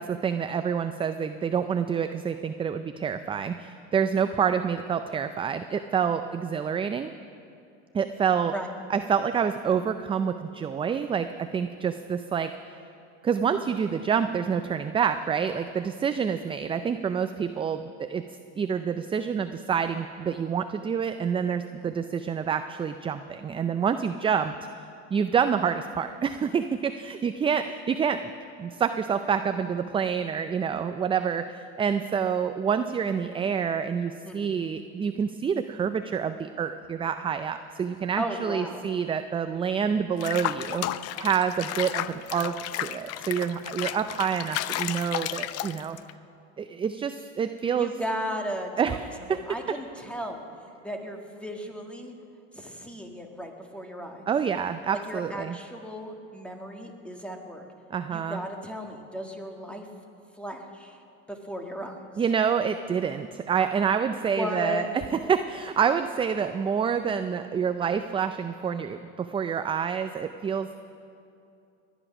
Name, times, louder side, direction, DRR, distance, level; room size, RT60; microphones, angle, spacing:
voice 1, 0.0-7.1 7.9-8.5 8.9-12.5 13.2-18.2 18.6-24.5 25.1-28.3 28.6-40.8 41.2-46.0 46.6-47.9 48.8-49.4 54.3-55.6 57.9-58.4 62.2-65.0 65.3-70.8, right 7 dB, 15° right, 9 dB, 0.4 m, -27 dB
voice 2, 34.2-34.6 38.2-38.8 47.7-49.1 49.5-50.4 50.8-52.1 52.5-54.3 54.9-57.6 58.1-59.9 60.4-61.0 61.3-62.0 64.3-64.9, equal, 5° left, 3 dB, 1.8 m, -35 dB
Water / Bathtub (filling or washing), 40.2-46.1, left 13 dB, 45° left, 0.6 m, -33 dB
20.5 x 10.0 x 6.0 m, 2.6 s
supercardioid pair, 105°, 35 cm